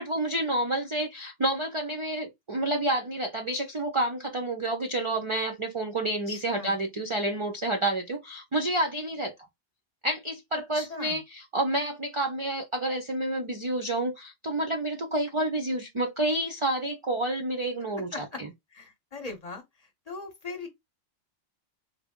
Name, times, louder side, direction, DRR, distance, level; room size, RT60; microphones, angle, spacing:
voice 1, 0.0-9.3 10.0-18.5, right 1 dB, 50° right, 0.3 m, -29 dB
voice 2, 6.3-6.8 10.7-11.2 18.1-18.4 18.7-19.6 20.1-20.7, left 3 dB, 40° left, 0.8 m, -39 dB
3.4 x 2.0 x 3.6 m
omnidirectional pair, 1.2 m